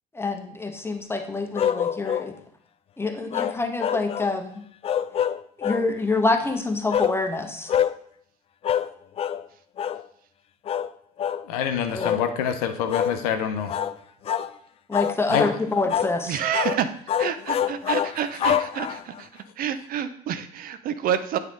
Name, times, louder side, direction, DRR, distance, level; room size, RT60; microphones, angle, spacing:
voice 1, 0.1-2.3 3.0-4.6 5.6-7.7 11.9-12.1 14.9-16.4, left 3 dB, 10° left, 5 dB, 1.0 m, -26 dB
sound 1, 1.6-2.3 3.3-4.3 4.8-5.9 6.9-7.2 7.7-8.0 8.6-8.9 9.2-9.4 9.8-10.0 10.7-10.9 11.2-11.4 12.0-12.3 12.9-13.2 13.7-13.9 14.3-14.5 14.9-15.6 15.9-16.2 16.5-16.8 17.1-19.2, left 9 dB, 30° left, 0.3 m, -25 dB
voice 2, 11.5-13.7 15.3-15.5, left 8 dB, 70° left, 7 dB, 0.7 m, -26 dB
voice 3, 16.3-16.9 17.2-21.4, right 9 dB, 50° right, 11 dB, 0.6 m, -28 dB
8.8 x 3.6 x 3.7 m, 0.65 s
figure-of-eight pair, 55°, 20 cm